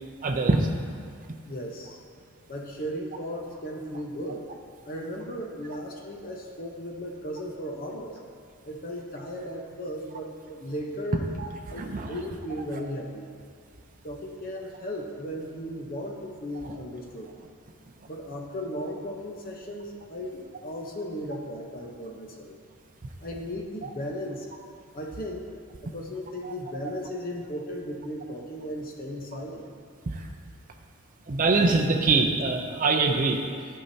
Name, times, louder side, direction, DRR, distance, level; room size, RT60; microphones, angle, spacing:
voice 1, 0.2-0.7 11.4-11.5 11.8-12.1 23.8-23.9 26.4-26.5 30.1-30.2 31.3-33.4, right 3 dB, 35° right, 2 dB, 0.5 m, -23 dB
voice 2, 1.4-2.0 2.5-4.4 4.8-8.2 8.6-11.3 11.7-13.3 14.0-17.3 18.1-22.6 23.2-25.5 25.8-29.6, equal, 40° left, 0 dB, 0.8 m, -36 dB
13.0 x 5.7 x 2.7 m, 2.2 s
head